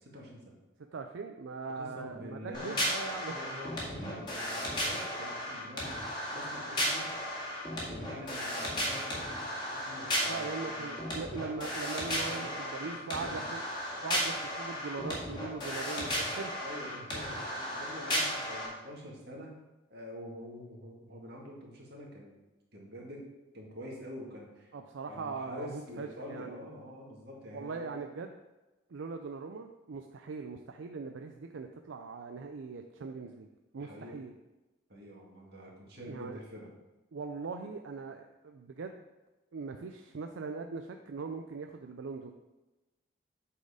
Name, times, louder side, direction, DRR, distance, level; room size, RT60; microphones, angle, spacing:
voice 1, 0.1-0.5 1.7-2.8 3.2-5.9 6.3-7.1 7.9-11.1 12.3-13.5 15.6-15.8 16.6-19.5 19.9-22.4 22.7-23.3 23.5-24.7 25.1-28.0 33.8-34.2 34.9-36.7, equal, 50° right, -2 dB, 1.9 m, -46 dB
voice 2, 0.9-3.3 10.2-13.6 14.0-16.5 24.7-26.6 27.5-28.4 28.9-33.5 33.7-34.3 36.0-36.4 37.1-39.0 39.5-42.3, right 4 dB, 75° right, 5 dB, 0.4 m, -40 dB
sound 1, 2.5-18.7, equal, 25° left, 1.8 m, -35 dB
8.2 x 4.3 x 5.0 m, 1.1 s
head